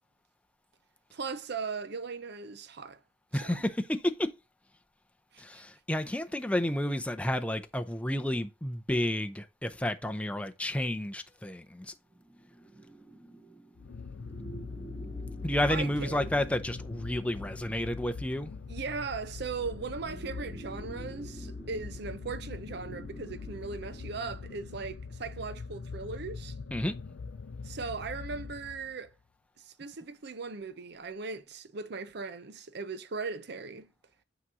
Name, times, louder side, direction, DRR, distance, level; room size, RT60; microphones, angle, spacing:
voice 1, 1.1-3.0 3.3-3.6 5.3-5.6 15.7-16.3 18.7-26.5 27.6-29.1 29.6-33.9, right 4 dB, 60° right, 0.6 m, -38 dB
voice 2, 3.3-4.3 5.4-11.9 15.4-18.5 26.7-26.9, left 1 dB, 5° left, 0.5 m, -31 dB
sound 1, 12.0-24.5, right 3 dB, 15° right, 2.0 m, -50 dB
sound 2, 13.8-29.1, left 4 dB, 70° left, 0.4 m, -42 dB
8.5 x 3.0 x 4.8 m
head